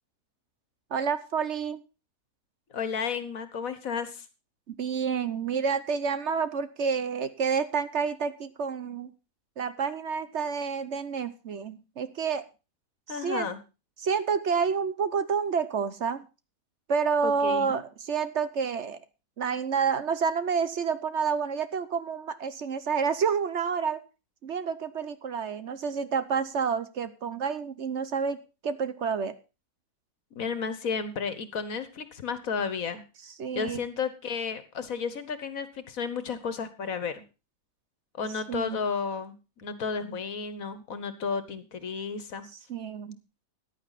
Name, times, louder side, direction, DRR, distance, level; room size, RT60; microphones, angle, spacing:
voice 1, 0.9-1.8 4.7-9.1 9.6-12.4 13.2-13.5 14.0-16.2 16.9-19.0 19.4-24.0 24.4-28.4 28.6-29.3 33.4-33.8 38.5-38.8 42.7-43.2, right 6 dB, 55° right, 13 dB, 1.1 m, -29 dB
voice 2, 2.7-4.3 13.1-13.6 17.2-17.8 30.4-33.0 33.5-37.2 38.2-42.5, left 5 dB, 70° left, 13 dB, 1.8 m, -32 dB
14.5 x 10.5 x 4.1 m, 0.30 s
omnidirectional pair, 1.5 m